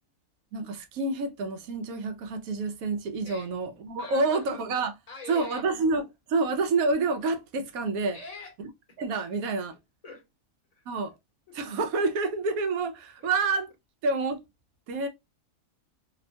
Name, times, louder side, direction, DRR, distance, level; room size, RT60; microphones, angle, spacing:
voice 1, 0.5-4.9 5.3-8.2 8.6-8.7 9.0-9.8 10.9-11.1 11.5-13.7 14.0-14.4 14.9-15.1, right 3 dB, 75° right, 1.0 m, -28 dB
voice 2, 4.0-4.5 5.1-5.6 8.1-8.5 8.9-9.0 10.0-10.2 10.7-10.8 11.5-11.6 13.2-13.3, left 4 dB, 30° left, 0.9 m, -43 dB
2.9 x 2.1 x 2.6 m
omnidirectional pair, 1.5 m